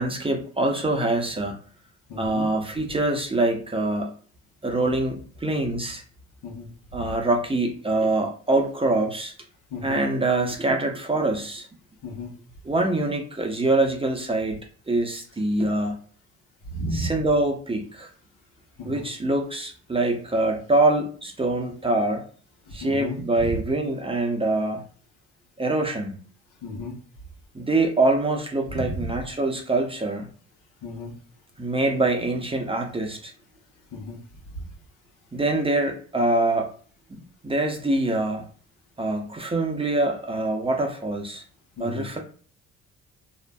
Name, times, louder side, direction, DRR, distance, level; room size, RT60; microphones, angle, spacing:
voice 1, 0.0-1.6 2.2-4.1 4.6-6.0 6.9-9.3 9.8-11.7 12.6-14.6 14.9-16.0 16.9-18.1 18.8-22.2 22.7-24.8 25.6-26.2 27.5-30.3 31.6-33.3 35.3-36.7 37.1-38.4 39.0-41.4 41.8-42.2, right 2 dB, 15° right, 2 dB, 0.7 m, -24 dB
voice 2, 2.1-2.5 6.4-7.0 9.7-10.0 12.0-12.3 16.6-17.1 18.8-19.1 22.7-23.6 26.6-26.9 28.7-29.1 30.8-31.1 33.9-34.2 34.5-34.7 41.8-42.0, left 1 dB, 75° left, -1 dB, 1.0 m, -33 dB
2.5 x 2.1 x 2.3 m, 0.44 s
hypercardioid pair, 55°, 32 cm